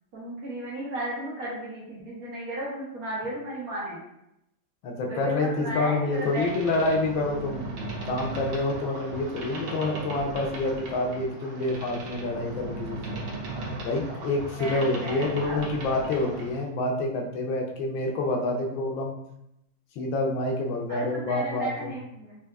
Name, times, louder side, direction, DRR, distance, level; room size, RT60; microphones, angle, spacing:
voice 1, 0.1-4.0 5.0-6.5 14.6-15.6 20.9-22.3, right 1 dB, 55° right, -6 dB, 1.3 m, -34 dB
voice 2, 4.8-7.7 8.0-13.2 13.8-19.2 20.0-21.9, left 2 dB, 90° left, 1 dB, 1.5 m, -27 dB
Boat Water vehicle, 6.1-16.7, right 2 dB, 85° right, 1.6 m, -37 dB
4.4 x 2.5 x 2.3 m, 0.82 s
omnidirectional pair, 2.1 m